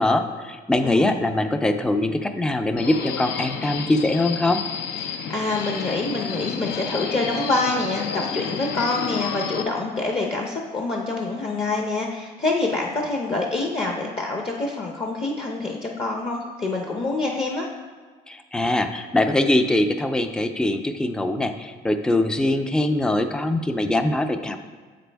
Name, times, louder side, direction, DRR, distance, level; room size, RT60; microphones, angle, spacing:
voice 1, 0.0-4.6 18.3-24.6, left 1 dB, 5° left, 8 dB, 0.4 m, -22 dB
voice 2, 0.8-1.2 5.0-17.7, left 3 dB, 30° left, 0 dB, 0.7 m, -26 dB
Subway metro underground, 2.8-9.6, left 6 dB, 75° left, 0.6 m, -31 dB
7.6 x 5.1 x 3.4 m, 1.5 s
cardioid pair, 110°, 17 cm